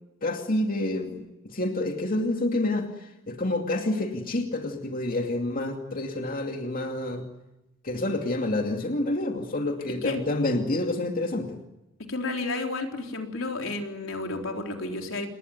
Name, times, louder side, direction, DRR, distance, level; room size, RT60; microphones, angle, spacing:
voice 1, 0.2-7.2 7.8-11.6, left 2 dB, 45° left, 3 dB, 2.5 m, -28 dB
voice 2, 12.1-15.3, left 2 dB, 80° left, 3 dB, 3.9 m, -31 dB
28.0 x 20.5 x 9.3 m, 0.95 s
head